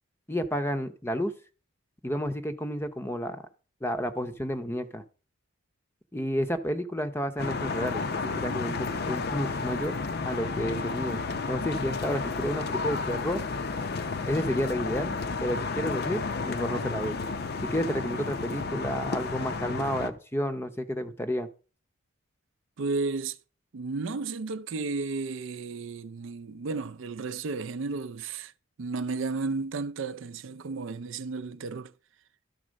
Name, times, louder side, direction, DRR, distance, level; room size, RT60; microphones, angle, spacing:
voice 1, 0.3-1.3 2.0-3.4 3.8-5.0 6.1-9.9 10.2-11.2 11.5-13.4 14.3-17.2 17.6-21.5, equal, 10° left, 0.6 m, -31 dB
sound 1, 7.4-20.1, left 4 dB, 50° left, 0.6 m, -32 dB
voice 2, 22.8-23.4 23.7-28.5 28.8-31.9, right 4 dB, 65° right, 0.4 m, -33 dB
12.0 x 4.1 x 6.3 m
head